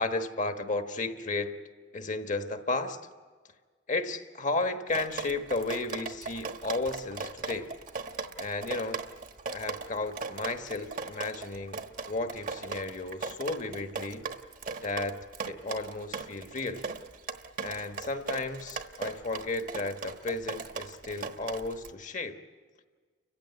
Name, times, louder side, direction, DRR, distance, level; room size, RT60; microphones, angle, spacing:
voice 1, 0.0-1.6 1.9-3.0 3.9-7.7 8.4-9.0 9.5-11.8 12.0-14.3 14.8-15.2 15.4-16.9 17.6-22.4, left 3 dB, 45° left, 7 dB, 1.3 m, -33 dB
Drip, 4.9-21.9, right 4 dB, 50° right, 1.2 m, -38 dB
29.5 x 15.5 x 9.4 m, 1.5 s
head